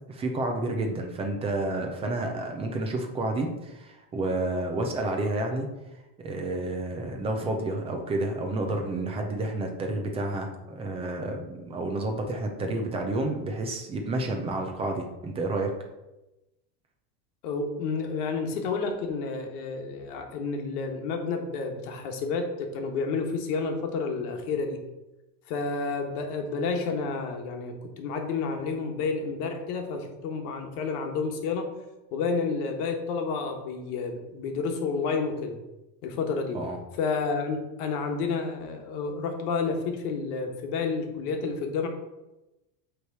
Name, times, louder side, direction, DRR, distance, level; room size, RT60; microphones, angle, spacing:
voice 1, 0.1-5.7 6.2-15.7 36.5-36.8, right 2 dB, 15° right, 3 dB, 0.4 m, -30 dB
voice 2, 17.4-24.8 25.5-31.8 32.1-35.6 36.0-36.6 37.0-41.9, left 4 dB, 65° left, 4 dB, 1.4 m, -30 dB
7.9 x 3.3 x 4.6 m, 0.99 s
supercardioid pair, 160°, 48 cm